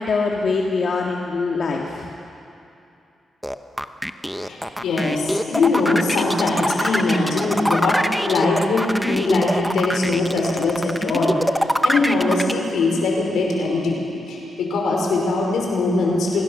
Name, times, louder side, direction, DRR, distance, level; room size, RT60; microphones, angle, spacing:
voice 1, 0.0-2.1, left 4 dB, 60° left, -1 dB, 1.9 m, -23 dB
sound 1, 3.4-12.5, equal, ahead, 0.9 m, -23 dB
voice 2, 4.4-8.0 8.3-16.4, left 3 dB, 85° left, -1 dB, 5.2 m, -21 dB
26.0 x 20.0 x 6.4 m, 2.7 s
cardioid pair, 85°, 0 cm